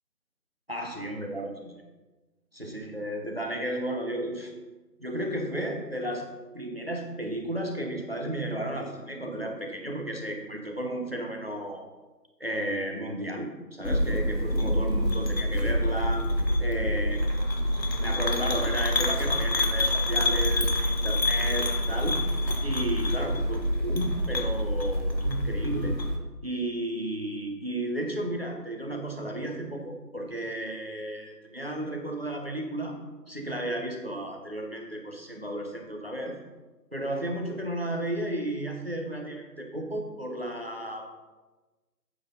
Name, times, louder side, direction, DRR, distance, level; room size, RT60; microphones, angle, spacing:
voice 1, 0.7-1.8 2.5-4.5 5.0-6.3 6.5-11.8 12.4-16.3 16.6-17.2 18.0-22.2 22.6-26.0 26.4-33.0 33.3-36.4 36.9-41.0, right 1 dB, 35° right, 2 dB, 1.2 m, -33 dB
sound 1, 13.8-26.2, left 1 dB, 85° left, 1.7 m, -26 dB
9.2 x 8.0 x 4.0 m, 1.2 s
figure-of-eight pair, 175°, 50 cm